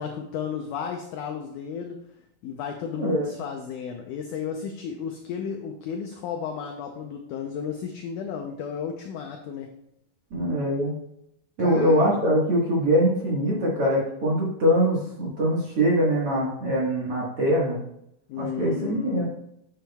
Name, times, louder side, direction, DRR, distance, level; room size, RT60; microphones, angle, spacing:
voice 1, 0.0-2.0 2.4-9.7 11.6-12.2 18.3-19.3, left 7 dB, 85° left, 4 dB, 1.7 m, -33 dB
voice 2, 10.3-10.9 11.6-17.8 18.4-19.3, equal, 50° right, -5 dB, 1.8 m, -23 dB
9.8 x 7.5 x 2.3 m, 0.76 s
omnidirectional pair, 4.4 m